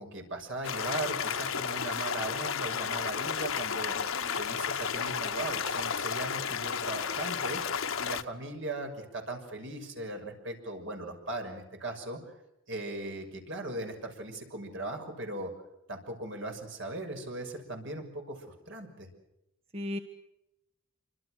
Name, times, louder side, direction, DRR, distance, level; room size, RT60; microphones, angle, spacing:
voice 1, 0.0-3.9 4.4-7.6 8.0-12.3 12.7-15.5 15.9-19.1, right 2 dB, 65° right, 4 dB, 6.5 m, -38 dB
sound 1, 0.6-8.2, left 7 dB, 75° left, 1.2 m, -32 dB
voice 2, 4.0-4.4 19.7-20.0, left 1 dB, 30° right, 7 dB, 1.4 m, -37 dB
27.5 x 25.5 x 6.3 m, 0.87 s
head